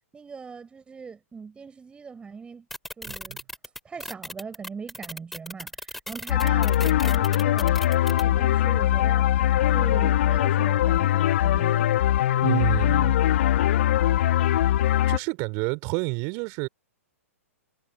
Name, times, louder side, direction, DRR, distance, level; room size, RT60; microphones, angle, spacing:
voice 1, 0.1-2.7 3.0-3.4 3.8-7.8 8.1-9.4 9.7-11.9, right 5 dB, 15° right, 4.8 m, -40 dB
sound 1, 2.7-8.2, left 1 dB, 5° left, 3.8 m, -36 dB
voice 2, 3.1-3.4 12.4-13.1 14.3-14.5 15.1-16.7, right 32 dB, 40° right, 3.2 m, -29 dB
sound 2, 6.3-15.2, left 12 dB, 55° left, 0.9 m, -21 dB
figure-of-eight pair, 110°, 8 cm